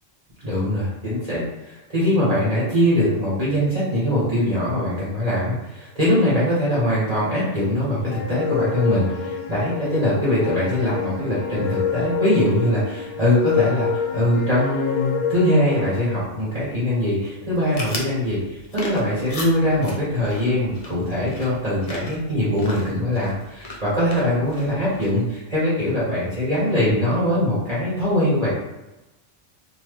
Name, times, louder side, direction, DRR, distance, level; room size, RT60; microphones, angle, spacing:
voice 1, 0.4-28.5, left 1 dB, 30° right, -10 dB, 1.3 m, -22 dB
sound 1, 8.1-16.2, left 7 dB, 65° left, 0.8 m, -28 dB
sound 2, 17.4-25.3, left 2 dB, 45° left, 0.4 m, -37 dB
3.0 x 2.4 x 3.2 m, 1.0 s
omnidirectional pair, 1.3 m